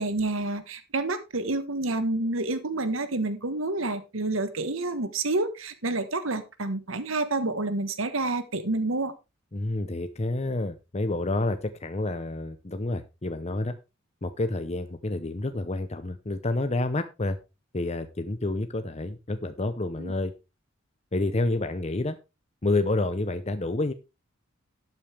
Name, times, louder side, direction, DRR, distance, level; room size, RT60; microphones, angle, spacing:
voice 1, 0.0-9.1 20.0-20.1, right 2 dB, 75° right, 11 dB, 1.4 m, -28 dB
voice 2, 9.5-13.7 14.2-17.4 17.7-20.3 21.1-22.2 22.6-23.9, left 2 dB, 30° left, 9 dB, 0.7 m, -29 dB
12.0 x 8.7 x 3.4 m, 0.26 s
head